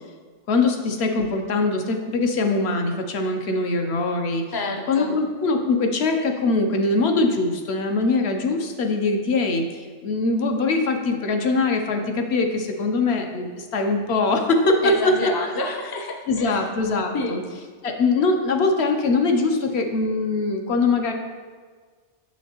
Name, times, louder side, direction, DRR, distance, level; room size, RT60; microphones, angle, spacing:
voice 1, 0.5-4.4 4.9-15.1 16.3-17.4 17.8-21.1, left 3 dB, 65° left, 4 dB, 0.8 m, -22 dB
voice 2, 4.5-5.1 14.8-16.7 17.1-17.3, left 2 dB, 35° left, 3 dB, 0.3 m, -28 dB
6.5 x 6.1 x 2.9 m, 1.5 s
omnidirectional pair, 1.3 m